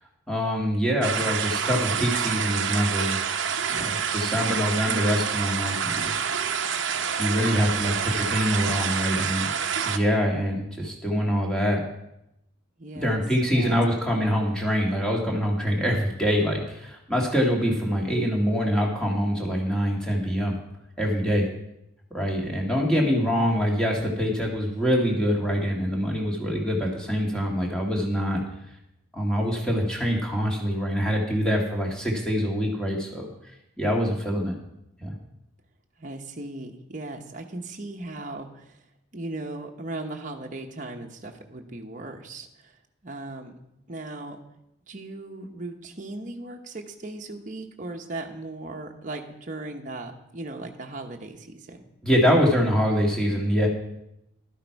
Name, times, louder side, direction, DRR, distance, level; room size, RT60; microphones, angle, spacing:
voice 1, 0.3-3.2 3.7-6.1 7.2-9.5 9.8-11.8 13.0-20.6 21.0-21.5 22.1-28.4 29.1-33.3 33.8-34.6 35.0-35.2 52.0-53.7, equal, 5° left, -2 dB, 1.9 m, -24 dB
sound 1, 1.0-10.0, right 7 dB, 65° right, 0.8 m, -27 dB
voice 2, 12.8-13.2 13.5-13.8 36.0-38.8 39.1-42.8 43.0-43.5 43.9-44.4 44.9-51.8, right 2 dB, 40° right, 2 dB, 1.0 m, -37 dB
12.0 x 9.3 x 4.7 m, 0.84 s
head